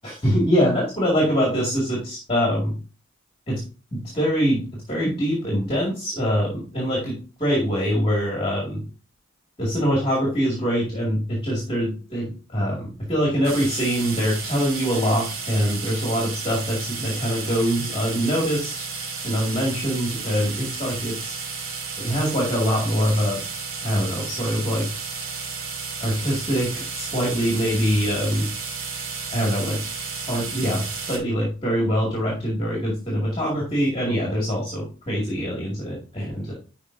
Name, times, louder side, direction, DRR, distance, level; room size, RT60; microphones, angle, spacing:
voice 1, 0.0-2.8 3.5-3.6 3.9-8.8 9.6-18.7 19.2-21.4 22.0-23.4 23.8-25.0 26.0-28.5 29.3-29.8 30.3-36.5, equal, 25° left, -3 dB, 2.1 m, -24 dB
sound 1, 13.4-31.2, right 5 dB, 75° right, 2.6 m, -32 dB
11.0 x 4.9 x 2.6 m, 0.36 s
head